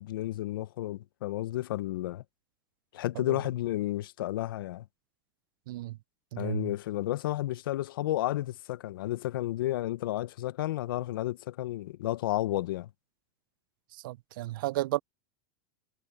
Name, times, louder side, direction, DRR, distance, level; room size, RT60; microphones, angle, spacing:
voice 1, 0.0-2.2 2.9-4.8 6.4-12.9, left 15 dB, 85° left, 0.6 m, -32 dB
voice 2, 5.7-6.0 6.3-6.7 13.9-15.0, right 17 dB, 75° right, 0.4 m, -33 dB
supercardioid pair, 140°, 11 cm